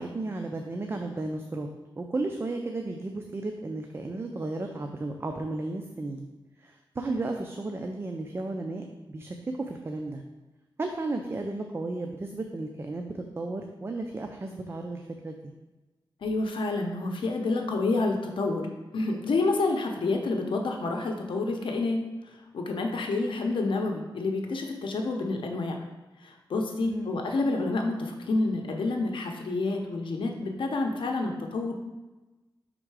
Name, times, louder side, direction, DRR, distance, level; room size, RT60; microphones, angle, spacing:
voice 1, 0.0-1.7 2.0-6.3 6.6-9.3 9.7-10.2 10.8-15.3 26.8-27.2, right 2 dB, 30° right, 3 dB, 0.4 m, -34 dB
voice 2, 16.2-18.6 18.9-22.0 22.3-25.8 26.2-31.7, left 3 dB, 75° left, 2 dB, 0.7 m, -28 dB
5.5 x 3.7 x 4.7 m, 1.1 s
wide cardioid pair, 110°, 9 cm